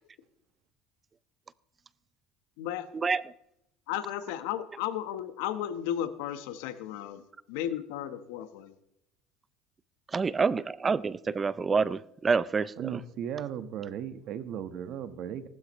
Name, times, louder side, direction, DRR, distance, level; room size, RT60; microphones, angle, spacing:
voice 1, 2.6-2.9 3.9-7.2 7.5-8.7, left 11 dB, 85° left, 11 dB, 1.2 m, -34 dB
voice 2, 10.1-12.7, right 5 dB, 25° right, 18 dB, 0.4 m, -27 dB
voice 3, 12.8-15.5, right 9 dB, 55° right, 11 dB, 1.3 m, -36 dB
18.5 x 12.5 x 3.1 m, 0.80 s
cardioid pair, 120°, 0 cm